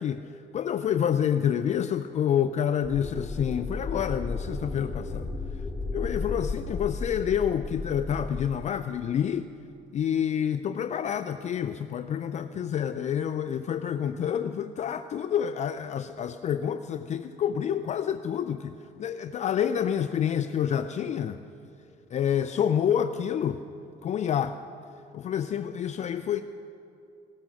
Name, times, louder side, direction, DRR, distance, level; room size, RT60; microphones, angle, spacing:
voice 1, 0.0-5.3 5.9-9.5 9.9-21.4 22.1-23.6 24.0-24.6 25.1-26.4, left 9 dB, 45° left, 10 dB, 0.4 m, -28 dB
sound 1, 2.8-8.5, left 3 dB, 10° left, 1.0 m, -34 dB
17.0 x 13.5 x 6.3 m, 2.7 s
cardioid pair, 110°, 17 cm